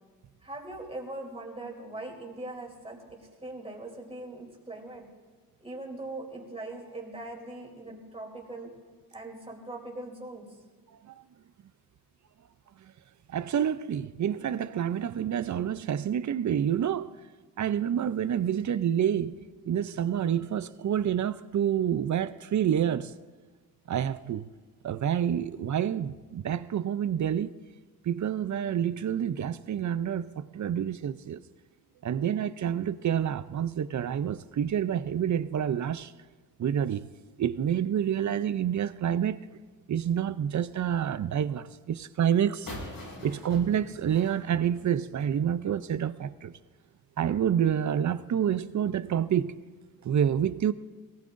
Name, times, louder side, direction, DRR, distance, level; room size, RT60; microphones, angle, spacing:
voice 1, 0.4-5.1 5.6-8.7 9.1-10.6, right 2 dB, 15° right, 3.1 m, -41 dB
voice 2, 13.3-17.1 17.6-19.3 19.7-23.1 23.9-24.4 24.8-27.5 28.1-31.4 32.0-36.1 36.6-37.1 37.4-39.4 39.9-42.7 43.2-46.5 47.2-49.5 50.0-50.7, right 9 dB, 55° right, 0.5 m, -28 dB
sound 1, 42.7-45.4, left 1 dB, 70° left, 5.9 m, -43 dB
22.0 x 18.5 x 2.6 m
wide cardioid pair, 135°, 36 cm